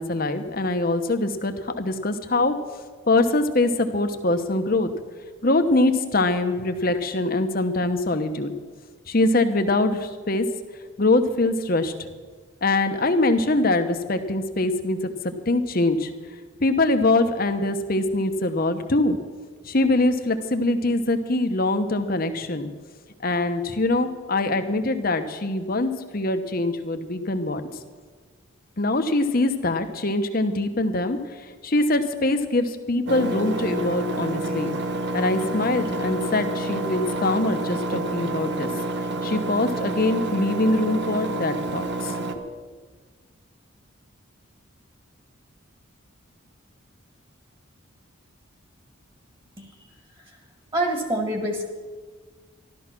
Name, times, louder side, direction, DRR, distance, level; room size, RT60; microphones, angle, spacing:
voice 1, 0.0-2.5 3.1-4.9 5.4-8.5 9.1-10.4 11.0-11.9 12.6-15.1 15.5-16.1 16.6-19.2 19.6-22.7 23.2-27.6 28.8-31.2 31.6-34.7 35.1-38.7 39.2-42.1, left 2 dB, 45° left, 8 dB, 1.0 m, -23 dB
Engine, 33.1-42.4, right 2 dB, 50° right, 0.9 m, -28 dB
voice 2, 49.6-49.9 50.2-50.4 50.7-51.6, right 1 dB, 25° right, 3 dB, 1.8 m, -27 dB
13.5 x 12.5 x 6.0 m, 1.5 s
head